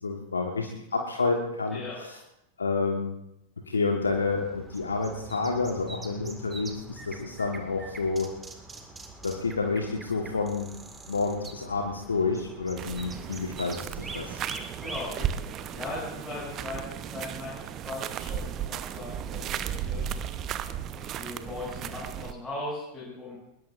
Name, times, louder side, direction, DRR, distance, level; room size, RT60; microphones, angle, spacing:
voice 1, 0.0-2.2 2.6-3.1 3.7-8.3 9.2-10.7 11.1-14.4, left 4 dB, 75° left, 2 dB, 1.5 m, -29 dB
voice 2, 1.7-2.0 14.8-17.6 17.8-20.0 20.9-23.4, left 2 dB, 10° left, -8 dB, 7.1 m, -39 dB
sound 1, 4.0-15.1, right 2 dB, 15° right, 2.0 m, -44 dB
sound 2, 12.8-22.3, right 9 dB, 30° right, 0.8 m, -35 dB
23.0 x 20.5 x 2.6 m, 0.83 s
figure-of-eight pair, 90°, 0 cm